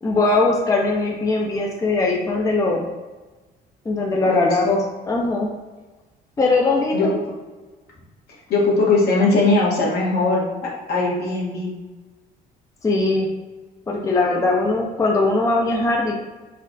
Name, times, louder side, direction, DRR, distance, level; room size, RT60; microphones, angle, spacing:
voice 1, 0.0-2.9 3.9-4.7 5.1-5.5 6.4-7.1 12.8-13.3 13.9-16.2, left 3 dB, 20° left, -1 dB, 0.5 m, -20 dB
voice 2, 4.3-4.8 6.9-7.2 8.5-10.4 10.9-11.7, left 3 dB, 70° left, -4 dB, 1.5 m, -19 dB
4.1 x 2.4 x 4.0 m, 1.2 s
cardioid pair, 110°, 17 cm